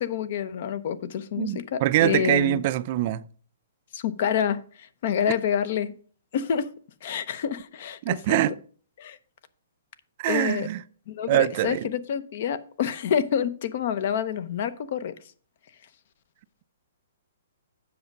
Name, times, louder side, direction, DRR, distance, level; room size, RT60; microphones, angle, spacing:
voice 1, 0.0-2.6 3.9-5.9 6.3-6.7 7.0-8.4 9.0-9.2 10.3-10.7 11.1-15.1, left 8 dB, 50° left, 0.8 m, -28 dB
voice 2, 1.4-3.2 8.0-8.5 10.2-10.8 11.3-11.9, right 14 dB, 40° right, 0.4 m, -24 dB
7.8 x 6.1 x 5.3 m
hypercardioid pair, 155°, 0 cm